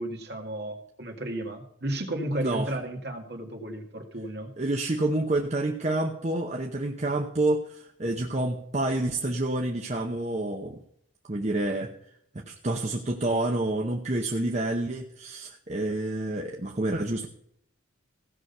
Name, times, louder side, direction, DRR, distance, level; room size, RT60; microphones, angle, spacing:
voice 1, 0.0-4.5, right 1 dB, 55° right, 3 dB, 2.1 m, -33 dB
voice 2, 2.3-2.7 4.6-10.8 11.2-11.9 12.3-17.3, right 2 dB, 35° right, 2 dB, 0.8 m, -28 dB
16.0 x 6.3 x 5.5 m, 0.71 s
head